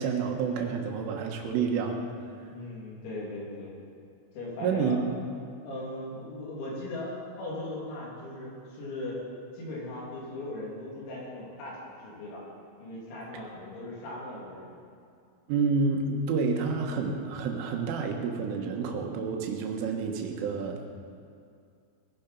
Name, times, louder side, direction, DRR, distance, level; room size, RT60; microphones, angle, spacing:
voice 1, 0.0-2.0 4.6-5.0 15.5-20.9, right 5 dB, 75° right, 3 dB, 3.7 m, -29 dB
voice 2, 2.5-3.8 4.3-5.2 5.6-9.2 9.5-12.4 12.8-14.7, left 1 dB, 85° left, -5 dB, 6.1 m, -38 dB
19.5 x 10.5 x 5.4 m, 2.4 s
omnidirectional pair, 5.9 m